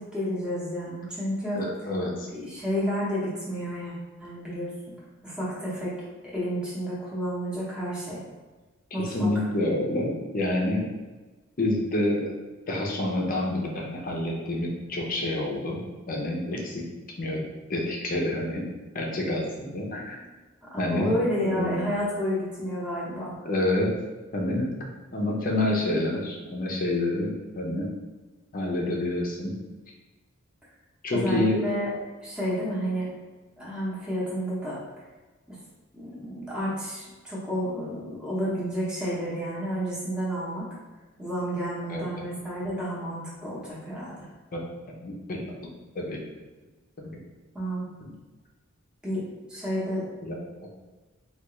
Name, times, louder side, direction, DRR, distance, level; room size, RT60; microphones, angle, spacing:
voice 1, 0.0-1.6 2.3-3.9 4.2-4.7 5.2-5.9 6.3-8.2 8.9-9.4 20.7-23.3 31.1-31.9 32.2-33.1 33.6-34.8 35.5-35.6 35.9-40.7 41.2-44.3 47.5-47.9 49.0-49.2 49.5-50.0, equal, 5° right, -8 dB, 0.8 m, -30 dB
voice 2, 1.5-2.3 9.0-10.9 11.6-12.3 12.7-15.8 16.1-16.8 17.2-17.4 17.7-18.6 18.9-20.2 20.8-21.1 21.4-21.9 23.4-23.9 24.3-24.7 25.1-27.9 28.5-29.5 31.0-31.6 41.9-42.0 45.0-45.4 45.9-46.2 47.0-47.1 48.0-48.1 50.2-50.3, left 1 dB, 40° left, -1 dB, 0.6 m, -28 dB
3.4 x 2.4 x 3.0 m, 1.2 s
head